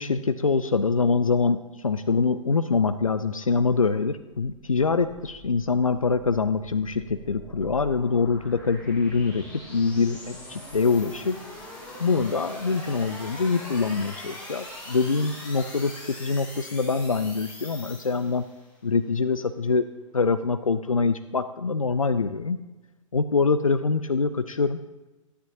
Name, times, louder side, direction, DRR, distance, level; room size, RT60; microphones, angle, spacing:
voice 1, 0.0-9.4 9.7-11.4 12.0-18.4 18.8-19.9 20.1-22.6 23.1-24.8, left 4 dB, 85° left, 11 dB, 0.4 m, -24 dB
sound 1, 4.3-18.7, left 1 dB, 10° left, 3.0 m, -43 dB
12.5 x 10.0 x 2.8 m, 1.1 s
figure-of-eight pair, 110°, 17 cm